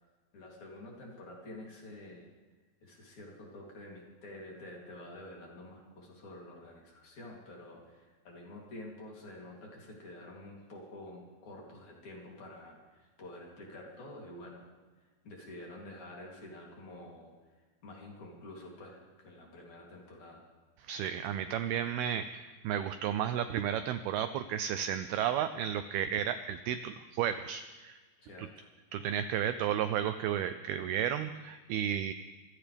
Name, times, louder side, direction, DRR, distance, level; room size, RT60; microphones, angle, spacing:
voice 1, 0.3-2.3 2.8-14.7 15.2-17.3 17.8-20.4 28.2-28.7, left 1 dB, 45° left, -2 dB, 4.1 m, -48 dB
voice 2, 20.8-28.0 28.4-28.5 28.9-32.1, right 9 dB, 85° right, 11 dB, 2.2 m, -33 dB
26.0 x 15.5 x 3.5 m, 1.3 s
omnidirectional pair, 5.1 m